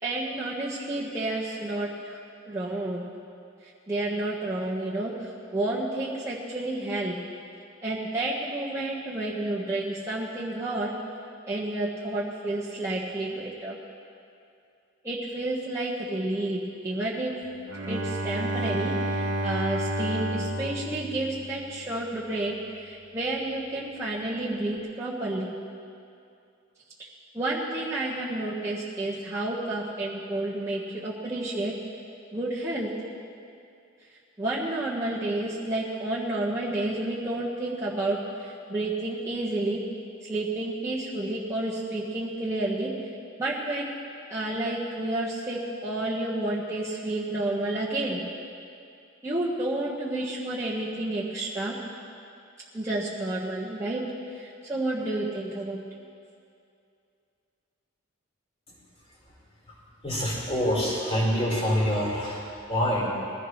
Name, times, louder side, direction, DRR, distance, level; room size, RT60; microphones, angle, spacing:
voice 1, 0.0-2.2 2.4-3.1 3.6-7.1 7.8-10.9 11.5-13.8 15.0-17.3 17.9-25.5 27.3-31.7 32.3-32.9 34.4-39.8 40.2-42.9 43.4-43.9 44.3-48.2 49.2-51.8 52.7-54.0 54.3-55.8, right 2 dB, 15° right, -7 dB, 1.4 m, -30 dB
Bowed string instrument, 17.7-22.0, right 1 dB, 60° right, 1.3 m, -30 dB
voice 2, 60.0-63.1, equal, 30° left, -5 dB, 4.6 m, -26 dB
21.5 x 16.0 x 3.3 m, 2.5 s
head